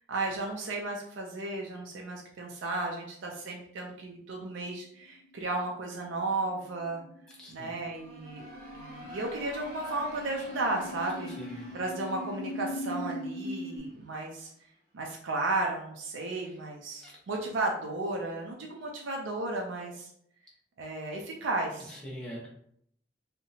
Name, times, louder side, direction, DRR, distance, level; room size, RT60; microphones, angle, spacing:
voice 1, 0.1-7.0 7.5-8.4 8.7-11.3 11.7-14.5 14.9-20.1 20.8-21.9, right 2 dB, 85° right, 0 dB, 0.4 m, -34 dB
sound 1, 5.2-13.8, left 1 dB, 75° left, 0.6 m, -41 dB
voice 2, 7.3-7.7 11.4-11.7 16.5-16.6 17.0-17.1 21.9-22.5, equal, 5° left, -5 dB, 0.5 m, -43 dB
sound 2, 7.5-14.3, left 1 dB, 55° right, 0.8 m, -49 dB
2.7 x 2.1 x 2.6 m, 0.70 s
head